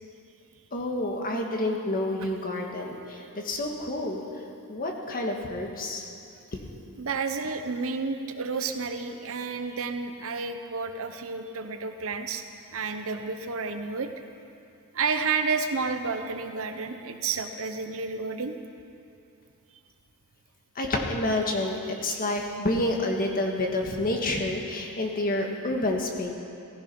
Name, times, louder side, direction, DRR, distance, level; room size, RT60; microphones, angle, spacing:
voice 1, 0.7-4.2 4.7-6.1 6.5-6.6 20.8-26.3, left 1 dB, 40° left, 1 dB, 1.7 m, -29 dB
voice 2, 7.0-12.4 12.7-14.1 14.9-18.6, right 4 dB, 65° right, 7 dB, 1.0 m, -30 dB
16.0 x 15.5 x 5.5 m, 2.7 s
head